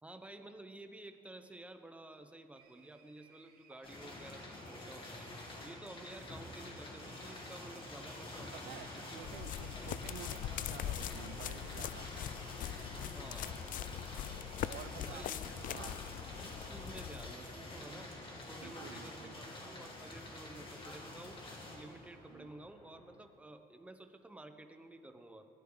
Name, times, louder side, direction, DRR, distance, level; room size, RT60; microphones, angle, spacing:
voice 1, 0.0-5.3 5.6-9.9 13.1-13.6 15.0-16.0 16.4-18.1 18.5-21.4 21.7-25.5, right 2 dB, 5° right, 7 dB, 1.0 m, -52 dB
sound 1, 2.5-15.0, right 5 dB, 65° right, 2.0 m, -66 dB
sound 2, 3.8-23.3, left 1 dB, 30° left, 2.8 m, -48 dB
voice 2, 8.5-12.1 14.6-16.0 18.6-19.5 22.3-22.5, right 12 dB, 80° right, 13 dB, 0.5 m, -51 dB
sound 3, 9.2-17.3, left 12 dB, 55° left, 0.4 m, -42 dB
20.5 x 14.0 x 4.0 m, 2.8 s
cardioid pair, 110°, 17 cm